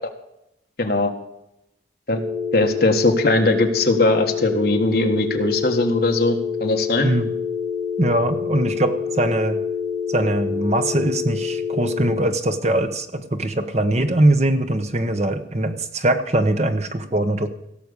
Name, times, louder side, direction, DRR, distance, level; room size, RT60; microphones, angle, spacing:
voice 1, 0.8-1.1 2.1-2.2 2.5-7.1, left 2 dB, 55° left, 4 dB, 1.6 m, -20 dB
sound 1, 2.1-12.1, left 6 dB, 70° right, 5.5 m, -27 dB
voice 2, 7.0-7.3 8.0-9.6 10.1-17.5, right 1 dB, 35° right, 8 dB, 1.1 m, -21 dB
17.0 x 6.8 x 6.8 m, 0.85 s
head